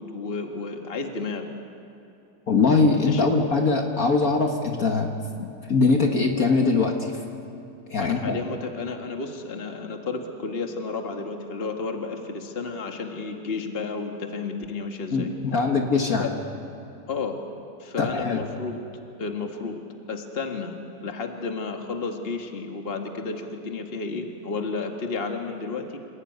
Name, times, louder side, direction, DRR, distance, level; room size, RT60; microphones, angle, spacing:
voice 1, 0.0-1.4 2.9-3.3 8.0-15.3 16.2-16.3 17.1-17.4 17.8-18.8 19.2-19.8 20.1-20.7 21.0-26.0, left 4 dB, 30° left, 4 dB, 1.9 m, -32 dB
voice 2, 2.5-5.1 5.4-7.1 7.9-8.4 15.1-16.3 18.0-18.5, left 4 dB, 50° left, 2 dB, 2.0 m, -22 dB
27.5 x 17.5 x 9.4 m, 2.7 s
omnidirectional pair, 2.0 m